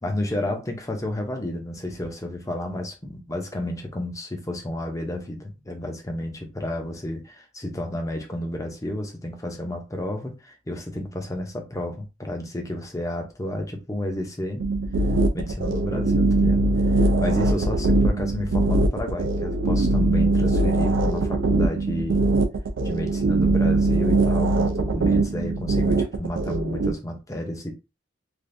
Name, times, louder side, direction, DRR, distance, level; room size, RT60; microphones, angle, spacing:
voice 1, 0.0-14.6 15.3-16.6 16.9-22.3 22.8-27.7, left 1 dB, 15° left, 0.6 m, -31 dB
sound 1, 14.6-26.9, right 2 dB, 75° right, 0.4 m, -21 dB
3.3 x 2.5 x 2.5 m
head